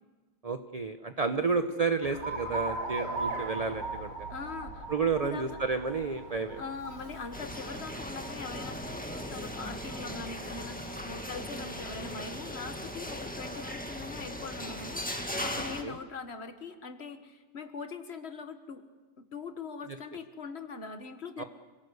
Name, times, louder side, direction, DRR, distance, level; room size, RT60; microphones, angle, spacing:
voice 1, 0.4-4.1 4.9-6.6 15.5-16.0 21.4-21.5, right 4 dB, 30° right, 8 dB, 0.7 m, -31 dB
Alarm, 2.0-12.1, right 3 dB, 85° right, 4.5 m, -40 dB
voice 2, 4.3-5.6 6.6-18.8 19.2-21.4, left 4 dB, 40° left, 8 dB, 1.6 m, -42 dB
sound 1, 7.3-15.8, equal, 5° left, 1.7 m, -38 dB
27.5 x 17.5 x 8.1 m, 1.3 s
omnidirectional pair, 1.9 m